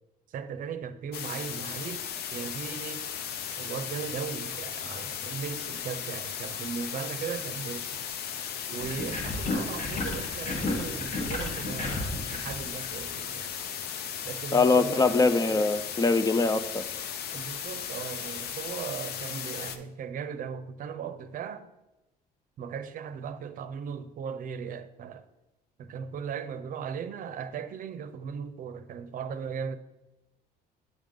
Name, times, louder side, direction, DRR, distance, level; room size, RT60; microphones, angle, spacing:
voice 1, 0.3-2.1 2.3-3.1 3.6-8.0 8.7-13.5 14.2-15.1 17.3-21.7 22.6-25.3 25.8-29.8, right 7 dB, 55° right, 0.6 m, -37 dB
sound 1, 1.1-19.8, left 8 dB, 70° left, 0.6 m, -36 dB
sound 2, 8.8-13.4, left 2 dB, 50° left, 1.4 m, -33 dB
voice 2, 14.5-16.8, left 3 dB, 20° left, 0.4 m, -23 dB
8.3 x 3.6 x 5.2 m
cardioid pair, 110°, 17 cm